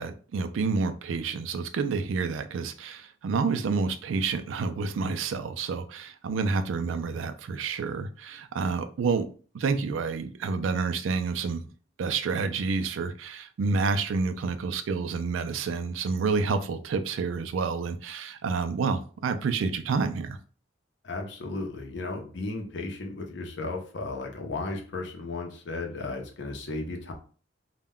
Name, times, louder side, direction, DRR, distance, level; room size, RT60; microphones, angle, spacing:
voice 1, 0.0-9.3 9.5-11.6 12.0-20.4, right 4 dB, 85° right, 10 dB, 0.3 m, -29 dB
voice 2, 21.0-27.1, left 3 dB, 65° left, 2 dB, 0.6 m, -35 dB
2.2 x 2.1 x 3.5 m, 0.40 s
head